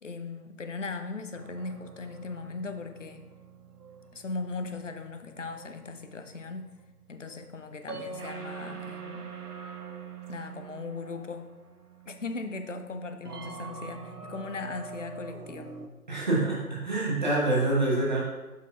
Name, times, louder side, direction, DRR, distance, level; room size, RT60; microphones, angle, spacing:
voice 1, 0.0-3.3 4.1-6.7 7.1-9.3 10.3-11.5 12.1-15.7, left 3 dB, 55° left, 7 dB, 0.7 m, -38 dB
sound 1, 1.3-15.9, right 5 dB, 85° right, 0.8 m, -45 dB
voice 2, 16.1-18.2, right 2 dB, 30° right, -5 dB, 1.0 m, -26 dB
7.9 x 6.6 x 2.3 m, 1.1 s
figure-of-eight pair, 150°, 45 cm